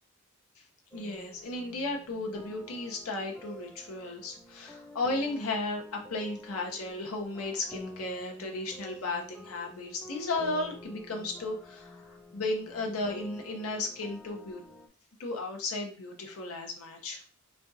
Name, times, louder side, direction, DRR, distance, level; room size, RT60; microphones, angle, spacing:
voice 1, 0.9-14.6 15.2-17.3, left 2 dB, 70° left, 1 dB, 0.7 m, -35 dB
sound 1, 0.9-14.9, equal, 5° left, 0.3 m, -49 dB
4.1 x 2.3 x 2.6 m, 0.39 s
head